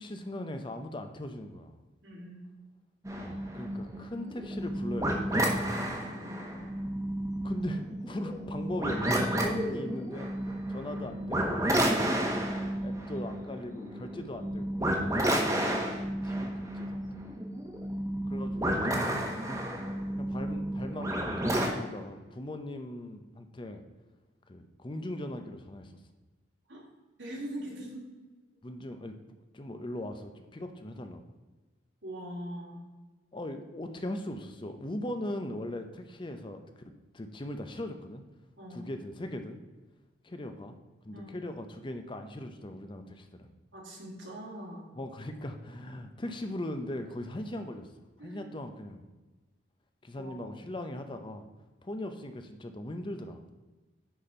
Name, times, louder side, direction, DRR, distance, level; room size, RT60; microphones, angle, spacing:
voice 1, 0.0-1.7 3.1-5.8 7.4-10.3 10.7-11.8 12.4-15.0 15.3-15.8 16.2-17.4 18.2-19.9 20.2-23.8 24.5-25.9 28.6-29.2 29.5-31.2 33.3-36.6 37.1-38.2 38.7-39.6 40.2-40.8 41.0-43.5 45.0-47.9 48.2-49.0 50.0-51.4 51.8-53.4, left 1 dB, 25° left, 7 dB, 0.6 m, -39 dB
voice 2, 2.0-2.4 6.1-6.7 26.7-26.8 27.2-28.0 32.0-32.9 38.6-38.9 41.1-41.3 43.7-44.9 48.2-48.5 50.1-50.6, right 1 dB, 80° right, -3 dB, 2.4 m, -42 dB
sound 1, 3.0-21.7, right 1 dB, 15° right, 1.1 m, -31 dB
10.0 x 4.3 x 4.3 m, 1.2 s
head